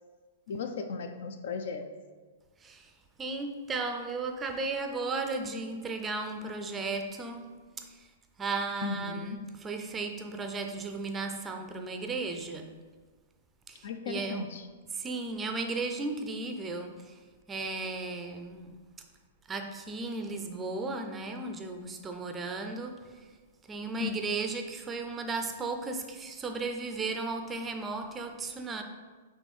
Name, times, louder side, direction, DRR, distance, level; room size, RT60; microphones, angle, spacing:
voice 1, 0.5-1.9 8.8-9.4 13.8-14.6 24.0-24.1, left 5 dB, 60° left, 7 dB, 0.4 m, -36 dB
voice 2, 2.6-2.9 3.2-7.5 7.8-8.1 8.4-12.7 13.7-14.5 14.9-17.2 17.5-18.8 19.5-23.3 23.7-28.8, right 3 dB, 15° right, 5 dB, 0.4 m, -35 dB
5.1 x 3.1 x 3.2 m, 1.4 s
figure-of-eight pair, 110°, 0 cm